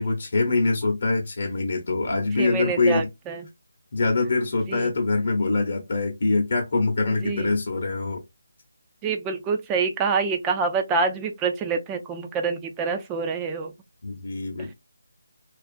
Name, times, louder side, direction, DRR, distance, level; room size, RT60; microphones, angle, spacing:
voice 1, 0.0-3.1 3.9-8.2 14.0-14.7, left 3 dB, 55° left, 0.7 m, -24 dB
voice 2, 2.4-3.5 4.7-4.9 7.1-7.5 9.0-13.7 14.6-14.7, right 4 dB, 15° right, 0.3 m, -26 dB
2.4 x 2.4 x 2.4 m
figure-of-eight pair, 165°, 0 cm